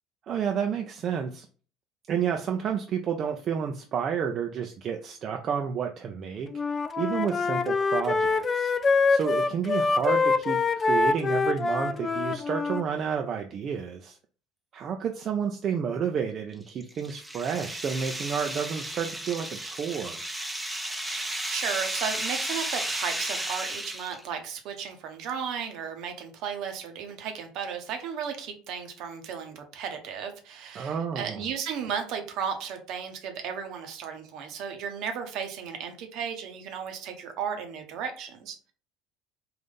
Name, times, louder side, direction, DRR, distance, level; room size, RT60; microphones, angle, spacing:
voice 1, 0.3-1.5 2.1-6.5 7.0-8.7 9.1-14.2 14.7-20.2 30.7-31.4, right 7 dB, 45° right, 4 dB, 0.5 m, -30 dB
Wind instrument woodwind instrument, 6.5-12.8, left 4 dB, 30° left, 0.3 m, -25 dB
sound 1, 16.5-24.3, right 1 dB, 10° right, 0.7 m, -33 dB
voice 2, 20.9-38.7, right 7 dB, 60° right, 6 dB, 0.8 m, -35 dB
3.8 x 2.6 x 3.5 m, 0.40 s
hypercardioid pair, 70°, 0 cm